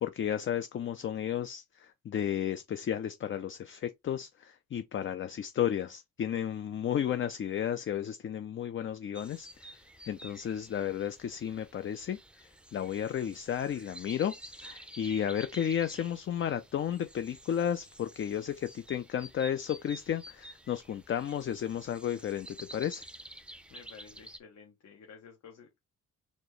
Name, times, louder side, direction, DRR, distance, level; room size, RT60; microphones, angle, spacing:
voice 1, 0.0-9.7 10.1-12.2 12.7-23.1, left 9 dB, 40° left, 0.5 m, -33 dB
sound 1, 9.1-24.4, right 1 dB, 5° right, 0.5 m, -51 dB
voice 2, 23.7-25.8, left 6 dB, 60° left, 1.1 m, -52 dB
4.3 x 2.9 x 3.2 m
cardioid pair, 90°, 30 cm